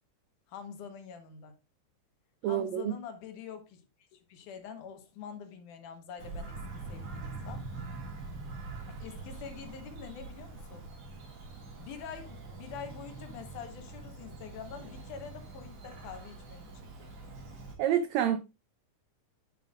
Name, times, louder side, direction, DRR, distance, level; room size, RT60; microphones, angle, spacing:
voice 1, 0.5-1.5 2.4-3.8 4.1-7.7 8.9-10.9 11.8-16.7 17.0-17.1, left 7 dB, 75° left, 2.7 m, -45 dB
voice 2, 2.4-2.9 17.8-18.4, right 10 dB, 85° right, 1.5 m, -27 dB
Bird vocalization bird call bird song, 6.2-17.7, right 3 dB, 50° right, 3.0 m, -44 dB
9.2 x 7.6 x 2.5 m
omnidirectional pair, 3.8 m